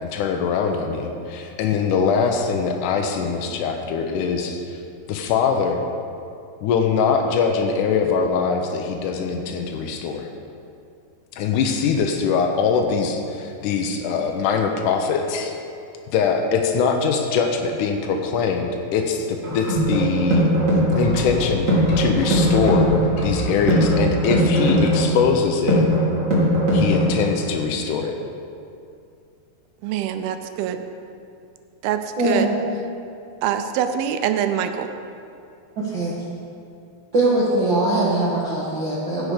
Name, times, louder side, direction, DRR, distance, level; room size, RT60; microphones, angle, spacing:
voice 1, 0.0-4.8 5.1-5.8 6.6-10.3 11.3-15.5 16.1-20.6 21.0-22.9 23.2-25.9 26.7-28.2, left 5 dB, 80° left, 3 dB, 1.8 m, -22 dB
sound 1, 19.4-27.4, equal, 25° right, 1.8 m, -20 dB
sound 2, 21.0-25.0, left 1 dB, 65° left, 2.8 m, -29 dB
voice 2, 29.8-30.9 31.8-32.5 33.4-34.9, right 9 dB, 80° right, 8 dB, 2.4 m, -24 dB
voice 3, 32.2-32.5 35.8-36.1 37.1-39.3, right 2 dB, 50° right, -8 dB, 1.4 m, -21 dB
16.0 x 6.2 x 5.0 m, 2.5 s
omnidirectional pair, 4.4 m